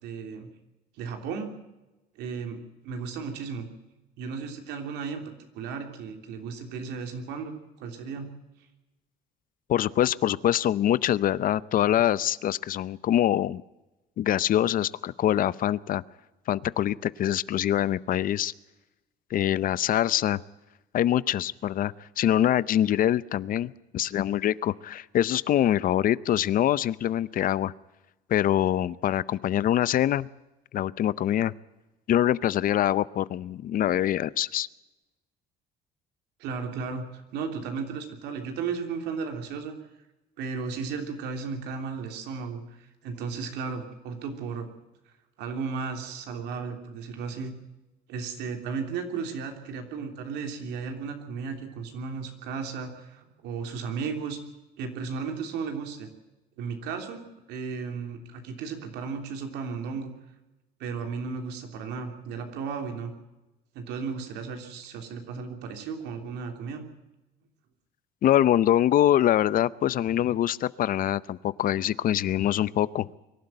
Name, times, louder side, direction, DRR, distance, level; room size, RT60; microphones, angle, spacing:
voice 1, 0.0-0.5 1.0-1.5 2.2-2.6 2.8-3.7 4.2-5.2 5.5-8.3 36.4-39.8 40.4-42.6 43.0-44.7 45.4-47.5 48.1-54.4 54.8-56.1 56.6-60.1 60.8-63.1 63.7-66.9, right 5 dB, 90° right, 5 dB, 3.2 m, -34 dB
voice 2, 9.7-13.6 14.2-16.0 16.5-18.5 19.3-20.4 20.9-27.7 28.3-30.3 30.7-31.5 32.1-34.7 68.2-73.1, left 11 dB, 55° left, 19 dB, 0.6 m, -24 dB
23.5 x 12.0 x 9.1 m, 1.0 s
cardioid pair, 110°, 17 cm